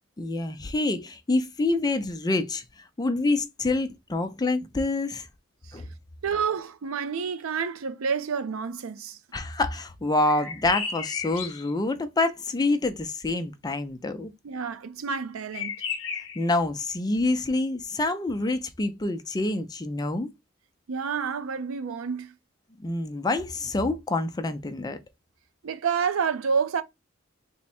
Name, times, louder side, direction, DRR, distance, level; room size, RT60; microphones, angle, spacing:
voice 1, 0.2-5.3 5.7-5.9 9.3-14.3 16.4-20.3 22.8-25.0, left 2 dB, 20° left, 0.4 m, -27 dB
voice 2, 6.2-9.2 14.4-15.8 20.9-22.3 25.6-26.8, right 6 dB, 90° right, 0.5 m, -29 dB
sound 1, 10.3-11.7 15.5-16.5, left 6 dB, 70° left, 0.7 m, -33 dB
3.4 x 2.1 x 4.2 m
head